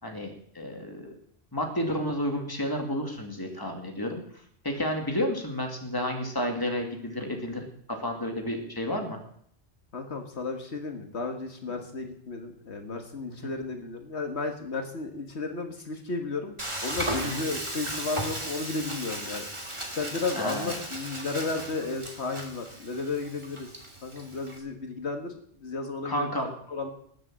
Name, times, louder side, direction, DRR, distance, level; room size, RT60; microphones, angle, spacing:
voice 1, 0.0-1.1 1.5-4.2 4.6-9.2 13.4-13.5 17.2-17.5 20.4-20.7 26.0-26.5, equal, 20° left, 3 dB, 2.4 m, -31 dB
voice 2, 9.9-16.6 16.8-23.7 24.0-26.3 26.7-26.9, left 3 dB, 75° left, 5 dB, 1.9 m, -33 dB
Frying (food), 16.6-24.6, right 1 dB, 25° right, 2.7 m, -36 dB
19.5 x 7.9 x 7.6 m, 0.65 s
omnidirectional pair, 1.1 m